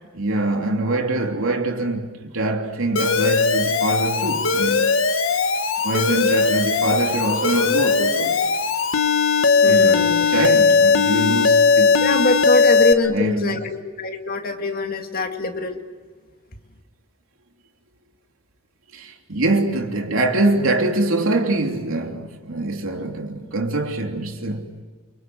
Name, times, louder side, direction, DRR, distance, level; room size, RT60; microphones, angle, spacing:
voice 1, 0.1-5.0 5.8-8.4 9.6-12.0 13.0-13.6 18.9-24.8, right 2 dB, 70° right, 3.2 m, -24 dB
Alarm, 3.0-12.9, left 4 dB, 65° left, 1.5 m, -18 dB
voice 2, 9.6-10.3 12.0-15.8, left 2 dB, 45° left, 2.2 m, -23 dB
29.5 x 25.5 x 7.9 m
head